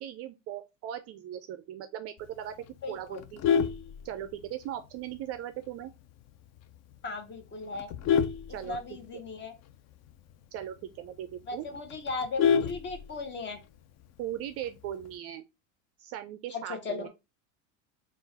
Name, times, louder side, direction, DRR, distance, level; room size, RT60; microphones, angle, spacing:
voice 1, 0.0-3.4 4.0-5.9 8.5-9.0 10.5-11.7 14.2-15.4 16.0-17.1, right 11 dB, 40° right, 0.4 m, -39 dB
voice 2, 2.8-3.2 7.0-7.9 8.6-9.5 11.5-13.6 16.5-17.1, left 3 dB, 30° left, 0.9 m, -37 dB
Vehicle horn car horn honking, 3.1-4.6 5.1-5.3 5.7-5.8 6.2-6.3 6.6-6.9 7.5-9.3 9.7-9.8 10.1-10.2 10.6-10.7 11.0-11.1 11.4-13.4 14.6-15.1, left 7 dB, 45° left, 0.5 m, -28 dB
3.8 x 2.4 x 4.0 m
supercardioid pair, 120°, 39 cm